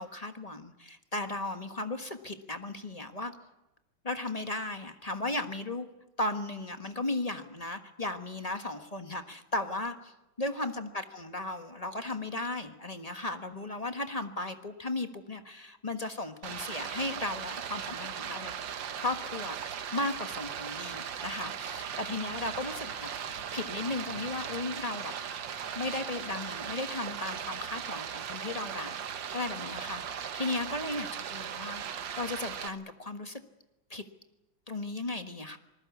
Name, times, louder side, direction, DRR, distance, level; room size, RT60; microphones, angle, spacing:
voice 1, 0.0-3.3 4.0-5.9 6.2-18.5 19.0-23.1 23.5-25.1 25.7-33.4 33.9-34.0 34.7-35.6, left 2 dB, 20° left, 7 dB, 1.3 m, -36 dB
Stream, 16.4-32.7, right 8 dB, 75° right, 1.9 m, -38 dB
sound 1, 20.8-27.8, left 2 dB, 65° left, 6.9 m, -57 dB
26.5 x 20.0 x 8.4 m, 0.95 s
omnidirectional pair, 2.1 m